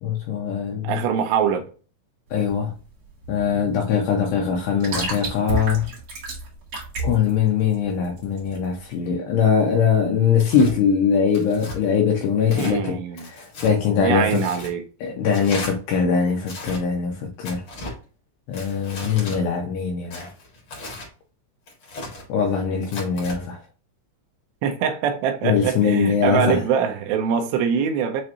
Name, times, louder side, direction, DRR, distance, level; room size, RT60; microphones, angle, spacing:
voice 1, 0.0-0.9 2.3-2.7 3.3-5.9 7.0-14.4 15.0-17.6 18.5-20.3 22.3-23.6 25.4-26.6, left 6 dB, 85° left, 2.5 m, -22 dB
voice 2, 0.8-1.6 12.6-13.3 14.0-14.8 24.6-28.2, right 7 dB, 85° right, 2.4 m, -23 dB
sound 1, 2.3-9.0, right 2 dB, 70° right, 1.2 m, -32 dB
Tearing, 10.4-10.7 11.3-11.8 12.4-12.8 13.2-13.7 14.3-14.7 15.3-15.7 16.4-16.8 17.4-17.9 18.5-19.4 20.1-21.1 21.7-22.2 22.8-23.4, left 2 dB, 70° left, 1.3 m, -35 dB
7.4 x 2.5 x 2.8 m
omnidirectional pair, 5.6 m